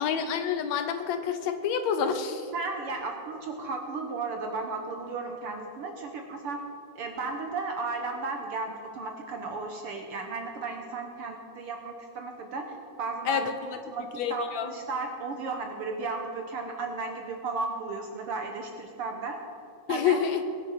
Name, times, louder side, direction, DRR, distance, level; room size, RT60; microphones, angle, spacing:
voice 1, 0.0-2.5 13.3-13.5 14.1-14.7 19.9-20.4, left 7 dB, 75° left, 9 dB, 1.8 m, -28 dB
voice 2, 2.5-6.6 6.9-13.5 13.9-19.4 19.9-20.2, right 3 dB, 65° right, 3 dB, 1.5 m, -34 dB
22.0 x 8.1 x 5.7 m, 2.7 s
omnidirectional pair, 3.5 m